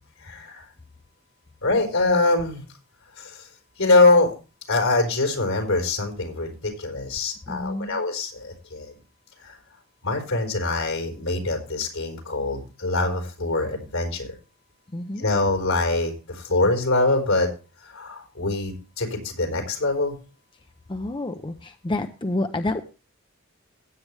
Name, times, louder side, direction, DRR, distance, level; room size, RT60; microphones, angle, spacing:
voice 1, 0.2-0.7 1.6-2.6 3.2-3.5 3.8-4.3 4.7-9.0 9.4-9.6 10.0-14.3 15.1-17.5 17.8-20.2, left 2 dB, 75° left, 2 dB, 4.5 m, -24 dB
voice 2, 7.5-8.0 14.9-15.3 20.9-22.8, left 2 dB, 20° left, 7 dB, 0.6 m, -29 dB
16.0 x 8.5 x 3.2 m, 0.32 s
head